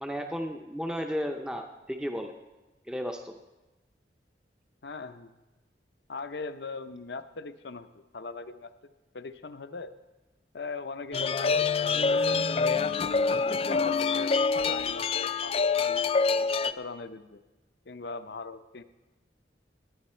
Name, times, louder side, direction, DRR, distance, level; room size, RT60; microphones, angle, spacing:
voice 1, 0.0-2.3 2.9-3.3, equal, 5° right, 4 dB, 0.6 m, -34 dB
voice 2, 4.8-5.3 6.1-9.9 10.5-12.5 13.1-16.1 16.6-17.4 17.9-18.8, left 3 dB, 75° left, 11 dB, 0.7 m, -40 dB
sound 1, 11.1-16.7, left 4 dB, 35° left, 0.3 m, -26 dB
18.0 x 9.9 x 4.4 m, 1.1 s
head